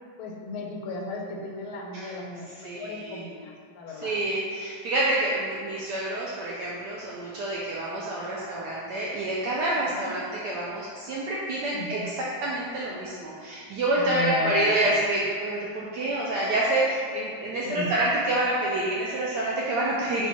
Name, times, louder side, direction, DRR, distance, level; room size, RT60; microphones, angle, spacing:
voice 1, 0.2-4.1 9.9-10.1 11.7-12.0 14.0-15.0 17.6-17.9, left 2 dB, 90° left, 0 dB, 1.5 m, -35 dB
voice 2, 2.6-3.2 4.0-20.3, right 1 dB, 80° right, -5 dB, 0.9 m, -27 dB
4.3 x 2.3 x 4.0 m, 2.2 s
omnidirectional pair, 2.3 m